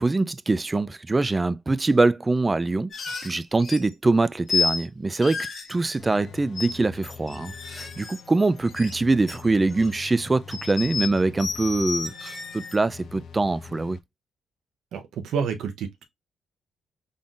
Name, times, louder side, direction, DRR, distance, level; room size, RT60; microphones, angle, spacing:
voice 1, 0.0-2.9 3.2-14.0, right 3 dB, 20° right, 0.3 m, -24 dB
sound 1, 2.9-3.9 4.5-4.8 5.2-6.2 6.5-6.7 7.0-8.9 9.2-10.1 10.5-12.7, left 5 dB, 50° left, 1.4 m, -31 dB
sound 2, 6.0-14.0, left 6 dB, 65° left, 0.7 m, -44 dB
voice 2, 14.9-16.0, right 6 dB, 75° right, 0.8 m, -29 dB
3.8 x 3.8 x 2.4 m
cardioid pair, 90°, 0 cm